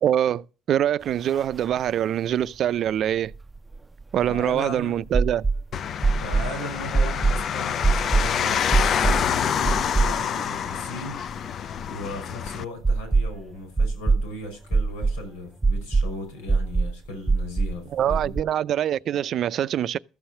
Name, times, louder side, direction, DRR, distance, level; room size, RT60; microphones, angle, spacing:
voice 1, 0.0-3.3 4.1-5.4 17.9-20.0, right 10 dB, 60° right, 0.5 m, -24 dB
sound 1, 1.3-1.4 1.7-1.8 3.3-4.5 5.1-5.6 6.0-6.5 6.9-7.4 7.8-8.3 8.7-9.2 9.7-10.4 10.7-10.8 12.8-13.4 13.8-14.2 14.7-15.2 15.6-16.1 16.5-16.9 17.3-17.7 18.1-18.4, right 4 dB, 15° right, 0.6 m, -21 dB
voice 2, 4.2-5.0 6.2-11.2 11.9-18.3, left 1 dB, 85° left, 5.8 m, -37 dB
sound 2, 5.7-12.6, left 8 dB, 55° left, 0.6 m, -27 dB
14.0 x 7.1 x 6.5 m
hypercardioid pair, 65°, 0 cm